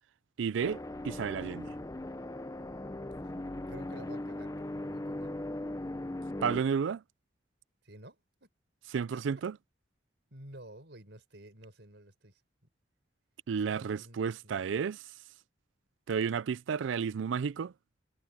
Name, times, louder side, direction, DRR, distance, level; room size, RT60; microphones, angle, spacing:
voice 1, 0.4-0.8 1.0-1.7 6.4-7.0 8.9-9.6 13.5-15.0 16.1-17.7, right 6 dB, 90° right, 0.4 m, -32 dB
sound 1, 0.6-6.6, left 1 dB, 20° left, 0.7 m, -39 dB
voice 2, 3.2-5.3 7.8-8.5 9.1-9.2 10.3-12.4 13.7-14.2 14.4-14.8, right 1 dB, 65° right, 5.1 m, -52 dB
head